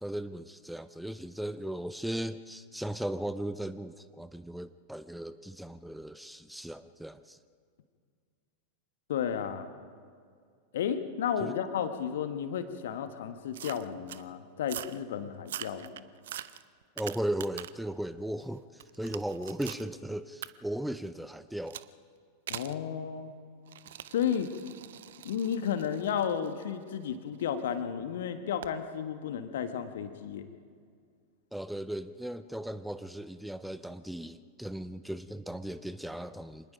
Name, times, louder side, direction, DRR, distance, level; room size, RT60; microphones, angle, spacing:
voice 1, 0.0-7.4 11.4-11.5 17.0-21.8 31.5-36.7, right 1 dB, ahead, 14 dB, 0.5 m, -37 dB
voice 2, 9.1-9.7 10.7-16.0 22.5-23.3 24.1-24.5 25.2-30.5, left 8 dB, 60° left, 9 dB, 1.4 m, -33 dB
sound 1, 13.5-14.2 14.6-15.0 15.4-17.9 18.3-19.9 20.4-20.5 21.7-21.9 22.5-22.8 23.7-27.6 28.6-28.8, right 12 dB, 60° right, 0.6 m, -43 dB
26.0 x 20.0 x 5.2 m, 2.1 s
figure-of-eight pair, 90°, 0 cm